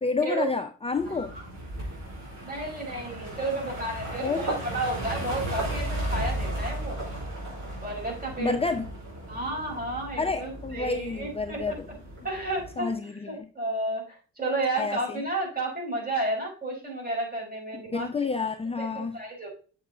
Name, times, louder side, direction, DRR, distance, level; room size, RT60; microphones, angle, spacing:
voice 1, 0.0-1.3 4.2-4.4 8.4-8.9 10.2-11.9 12.8-13.5 14.7-15.2 17.7-19.2, left 4 dB, 15° left, 7 dB, 0.7 m, -29 dB
sound 1, 0.9-12.8, right 1 dB, 55° right, 5.0 m, -35 dB
voice 2, 1.0-1.4 2.4-7.0 7.7-8.7 9.3-11.7 12.2-12.9 13.2-18.3 18.8-19.5, right 2 dB, 25° right, -1 dB, 5.0 m, -32 dB
7.2 x 6.9 x 3.8 m, 0.38 s
figure-of-eight pair, 45°, 34 cm